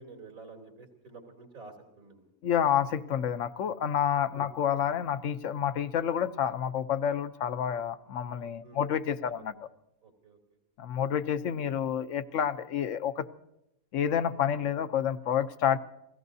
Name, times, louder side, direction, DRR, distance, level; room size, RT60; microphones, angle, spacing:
voice 1, 0.0-2.3 4.4-4.5 8.6-8.9 9.2-9.3 10.0-10.4, right 3 dB, 75° right, 2 dB, 3.6 m, -50 dB
voice 2, 2.4-9.5 10.8-13.3 13.9-15.8, left 9 dB, 65° left, 11 dB, 1.1 m, -29 dB
30.0 x 17.0 x 2.7 m, 0.83 s
omnidirectional pair, 1.5 m